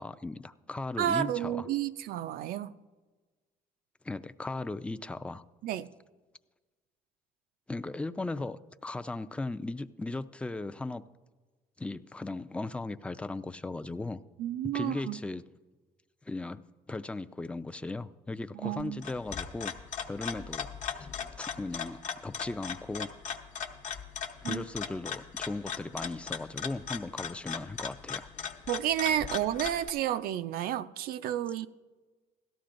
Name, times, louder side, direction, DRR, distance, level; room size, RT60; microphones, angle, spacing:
voice 1, 0.0-1.7 4.0-5.4 7.7-11.0 11.8-14.2 14.7-15.4 16.3-16.6 16.9-19.7 20.1-20.7 21.4-23.1 24.4-28.3, left 2 dB, 5° left, 0.3 m, -37 dB
voice 2, 1.0-2.7 5.6-5.9 14.4-15.2 18.5-19.0 24.4-24.6 28.7-31.7, right 11 dB, 80° right, 0.4 m, -31 dB
sound 1, 18.8-29.9, left 7 dB, 55° left, 0.9 m, -38 dB
17.0 x 13.0 x 2.5 m
cardioid pair, 115°, 15 cm